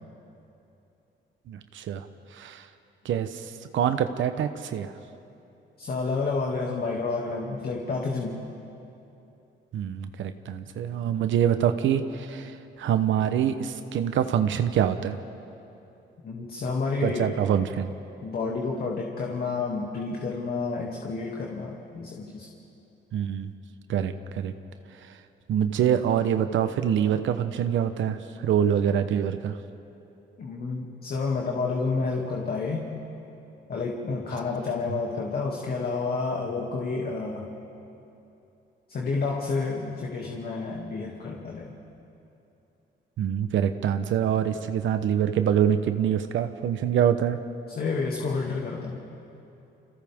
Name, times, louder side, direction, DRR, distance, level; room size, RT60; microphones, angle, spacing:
voice 1, 1.5-2.1 2.3-2.6 3.0-4.9 9.7-15.2 17.0-17.9 23.1-23.5 23.9-24.5 25.5-29.5 43.2-47.4, right 9 dB, 75° right, 9 dB, 0.9 m, -25 dB
voice 2, 5.8-8.4 16.2-17.3 18.2-22.5 30.4-32.9 33.7-37.5 38.9-41.7 47.8-49.0, left 4 dB, 50° left, -2 dB, 2.4 m, -30 dB
29.0 x 26.0 x 3.6 m, 2.8 s
cardioid pair, 90°, 20 cm